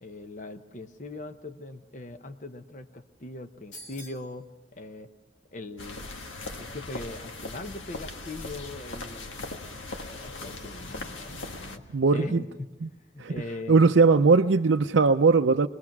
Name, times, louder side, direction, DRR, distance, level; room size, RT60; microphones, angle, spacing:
voice 1, 0.0-5.1 5.5-6.1 6.6-9.4 10.1-12.7 13.1-13.8, left 2 dB, 40° left, 0.9 m, -40 dB
sound 1, 3.7-4.3, equal, 65° left, 2.9 m, -45 dB
sound 2, 5.8-11.8, left 2 dB, 90° left, 1.6 m, -39 dB
voice 2, 11.9-12.4 12.8-12.9 13.2-13.3 13.7-15.7, right 4 dB, 75° right, 0.6 m, -20 dB
24.5 x 20.5 x 6.0 m
head